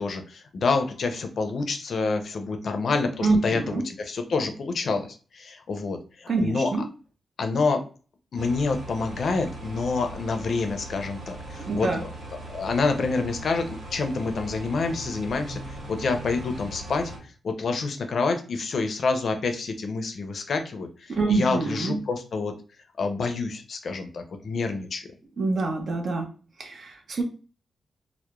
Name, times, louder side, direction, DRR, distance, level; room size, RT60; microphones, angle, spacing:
voice 1, 0.0-6.7 7.4-7.9 8.3-12.1 12.5-15.6 15.9-17.1 17.4-22.5 23.0-25.1, left 4 dB, 60° left, 6 dB, 0.4 m, -27 dB
voice 2, 3.2-3.8 6.3-6.8 11.7-12.0 21.1-22.0 25.4-26.3 26.6-27.2, right 3 dB, 60° right, 3 dB, 0.5 m, -25 dB
sound 1, 8.4-17.2, right 1 dB, 80° right, 1.1 m, -39 dB
2.2 x 2.0 x 2.9 m, 0.36 s
wide cardioid pair, 130°, 0 cm